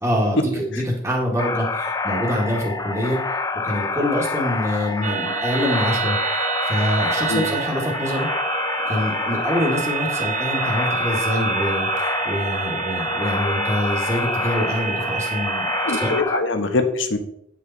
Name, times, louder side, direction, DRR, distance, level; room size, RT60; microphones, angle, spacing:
voice 1, 0.0-3.4 3.6-8.3 8.9-16.1, equal, 15° right, -2 dB, 1.8 m, -25 dB
sound 1, 1.4-16.4, left 3 dB, 20° left, 0.8 m, -27 dB
sound 2, 5.0-16.2, right 6 dB, 40° right, 0.5 m, -28 dB
voice 2, 15.8-17.2, left 3 dB, 85° left, 6 dB, 1.3 m, -23 dB
9.2 x 6.6 x 4.1 m, 0.69 s
head